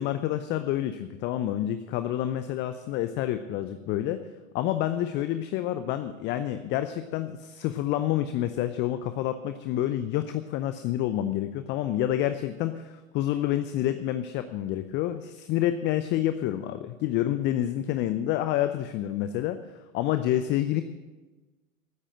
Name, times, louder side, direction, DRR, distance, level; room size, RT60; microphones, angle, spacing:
voice 1, 0.0-4.2 4.5-19.6 19.9-20.8, left 12 dB, 25° left, 11 dB, 0.6 m, -28 dB
12.5 x 10.0 x 7.5 m, 1.2 s
figure-of-eight pair, 95°, 42 cm